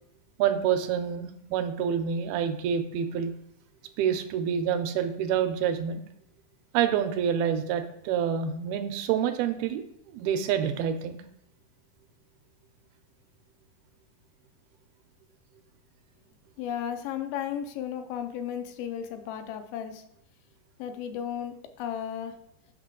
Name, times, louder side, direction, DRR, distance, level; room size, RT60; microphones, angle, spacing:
voice 1, 0.4-3.3 4.0-6.0 6.7-9.8 10.1-11.2, right 8 dB, 90° right, 8 dB, 2.6 m, -27 dB
voice 2, 16.6-20.0 20.8-22.4, left 9 dB, 85° left, 8 dB, 2.6 m, -34 dB
8.7 x 5.6 x 3.8 m, 0.76 s
omnidirectional pair, 4.3 m